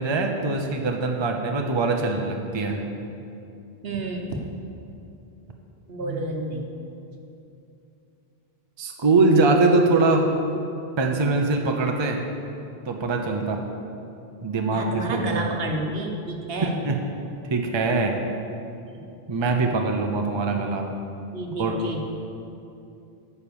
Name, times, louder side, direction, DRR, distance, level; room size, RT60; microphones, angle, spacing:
voice 1, 0.0-2.8 6.0-6.7 8.8-10.3 11.0-12.2 12.9-13.6 14.4-15.5 16.6-17.0 17.5-18.2 19.3-20.9 21.6-21.8, right 3 dB, 30° right, 3 dB, 0.7 m, -23 dB
voice 2, 3.8-4.4 5.9-6.7 14.7-16.7 18.9-19.0 21.3-22.0, right 2 dB, 70° right, 1 dB, 1.2 m, -30 dB
9.4 x 5.7 x 7.0 m, 2.7 s
omnidirectional pair, 1.0 m